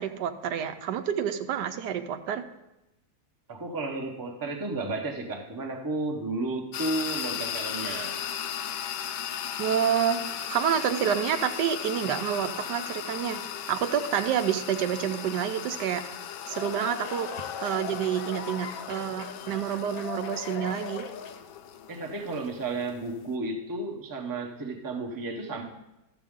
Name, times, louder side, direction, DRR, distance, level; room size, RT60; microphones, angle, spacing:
voice 1, 0.0-2.4 9.6-10.2 10.5-13.4 13.7-16.0 16.5-17.3 17.6-21.0, right 9 dB, 80° right, 8 dB, 1.2 m, -28 dB
voice 2, 3.5-8.2 21.9-25.6, right 2 dB, 20° right, 2 dB, 0.6 m, -33 dB
sound 1, 6.7-23.3, left 9 dB, 90° left, 1.2 m, -37 dB
sound 2, 16.2-21.6, left 8 dB, 65° left, 1.0 m, -39 dB
13.5 x 7.0 x 3.6 m, 0.95 s
omnidirectional pair, 1.8 m